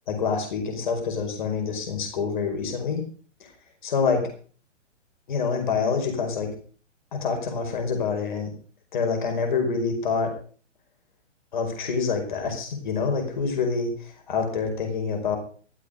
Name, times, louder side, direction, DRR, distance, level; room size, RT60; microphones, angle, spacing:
voice 1, 0.1-3.0 3.4-3.5 3.8-4.3 5.3-6.6 7.1-8.5 8.9-10.3 11.5-15.4, left 5 dB, 40° left, 4 dB, 5.1 m, -26 dB
14.0 x 14.0 x 5.2 m, 0.42 s
hypercardioid pair, 180°, 37 cm